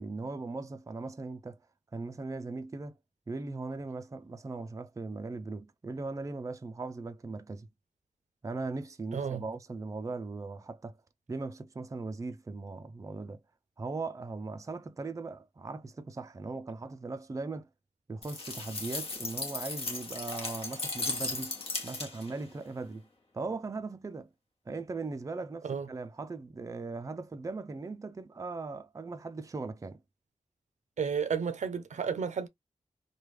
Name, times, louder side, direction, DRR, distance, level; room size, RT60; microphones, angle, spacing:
voice 1, 0.0-1.6 1.9-3.0 3.3-7.7 8.4-11.0 11.3-13.4 13.8-17.7 18.1-21.6 21.8-23.1 23.3-24.3 24.7-30.0, right 3 dB, 25° right, 0.4 m, -39 dB
voice 2, 9.1-9.4 25.6-25.9 31.0-32.5, right 6 dB, 80° right, 0.6 m, -32 dB
sound 1, 18.2-22.4, left 3 dB, 55° left, 1.1 m, -36 dB
3.1 x 2.3 x 3.2 m
wide cardioid pair, 85°, 12 cm